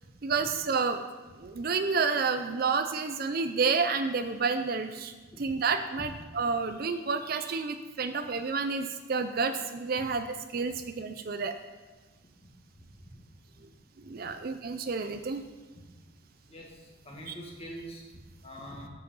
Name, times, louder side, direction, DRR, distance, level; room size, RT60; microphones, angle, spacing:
voice 1, 0.2-1.0 1.4-5.1 5.4-10.3 10.5-11.5 14.1-15.4 17.3-17.4, right 4 dB, 45° right, 9 dB, 0.4 m, -30 dB
voice 2, 16.4-18.9, equal, 30° left, -2 dB, 1.7 m, -45 dB
8.4 x 6.9 x 5.5 m, 1.3 s
head